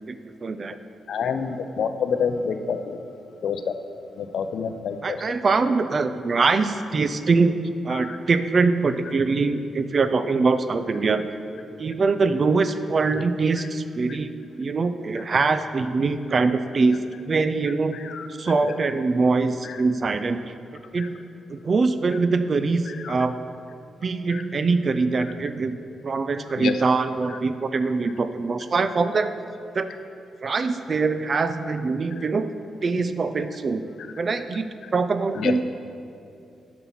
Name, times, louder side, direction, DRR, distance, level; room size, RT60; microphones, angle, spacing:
voice 1, 0.1-0.8 5.0-11.2 11.8-14.3 14.6-18.0 18.4-20.5 20.9-21.2 21.5-23.4 24.0-25.8 26.0-29.3 29.7-29.9 30.4-32.5 32.8-33.9 34.2-35.6, right 4 dB, 35° right, 11 dB, 0.3 m, -23 dB
voice 2, 1.1-3.0 3.4-3.7 4.2-5.2 7.9-8.2 17.9-18.3 19.6-19.8 21.0-21.1 23.0-23.1 24.3-24.4 26.6-26.7 32.2-32.3 35.4-35.5, left 6 dB, 65° left, 8 dB, 0.5 m, -27 dB
9.2 x 5.9 x 5.7 m, 2.5 s
wide cardioid pair, 150°, 0 cm